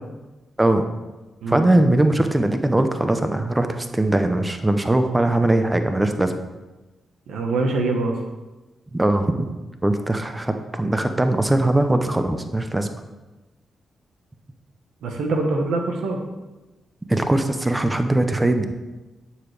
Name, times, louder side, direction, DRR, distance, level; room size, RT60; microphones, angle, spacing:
voice 1, 1.5-6.3 8.9-9.4 9.8-12.9 17.1-18.7, right 1 dB, 20° right, 7 dB, 0.8 m, -20 dB
voice 2, 7.3-8.2 15.0-16.2, right 3 dB, 85° right, 3 dB, 1.2 m, -23 dB
9.3 x 6.9 x 3.3 m, 1.1 s
cardioid pair, 60°, 0 cm